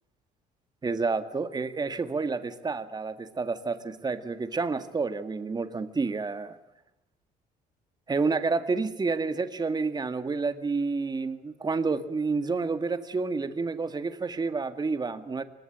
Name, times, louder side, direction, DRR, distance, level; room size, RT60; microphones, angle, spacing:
voice 1, 0.8-6.6 8.1-15.4, right 4 dB, 25° right, 10 dB, 1.9 m, -29 dB
24.0 x 20.5 x 8.9 m, 0.89 s
cardioid pair, 110°, 17 cm